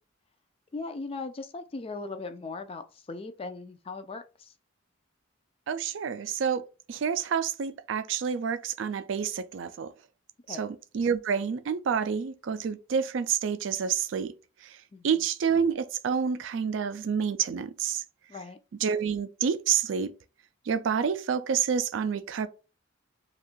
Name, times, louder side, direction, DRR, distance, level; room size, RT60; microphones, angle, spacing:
voice 1, 0.7-4.5 10.5-10.6 14.9-15.1 18.3-18.6, left 3 dB, 30° left, 0.3 m, -38 dB
voice 2, 5.7-9.9 10.5-14.3 14.6-14.8 15.0-18.0 18.8-20.1 20.7-22.5, right 7 dB, 65° right, 0.4 m, -28 dB
2.6 x 2.3 x 3.6 m
head